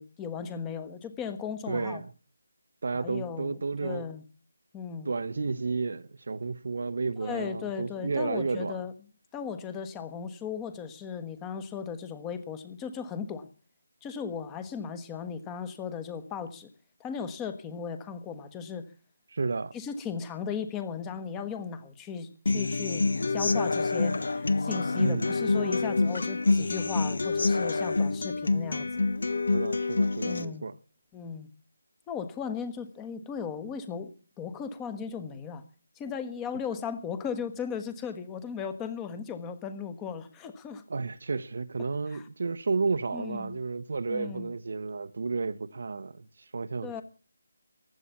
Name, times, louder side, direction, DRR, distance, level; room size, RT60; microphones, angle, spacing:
voice 1, 0.0-2.0 2.9-4.2 4.7-5.1 7.2-8.9 9.3-13.5 14.0-16.7 17.0-18.9 19.7-29.1 30.2-30.7 31.1-31.5 32.1-34.1 34.4-35.6 36.0-40.8 42.1-42.2 43.1-43.5 44.1-44.5 46.8-47.0, left 6 dB, 10° left, 1.3 m, -36 dB
voice 2, 1.7-2.1 2.8-4.1 5.0-8.9 19.3-19.7 25.0-25.3 29.5-30.8 40.9-46.3 46.5-47.0, right 4 dB, 50° right, 0.9 m, -32 dB
Human voice / Acoustic guitar, 22.5-30.4, left 3 dB, 60° left, 1.1 m, -27 dB
15.5 x 12.0 x 7.1 m
figure-of-eight pair, 155°, 0 cm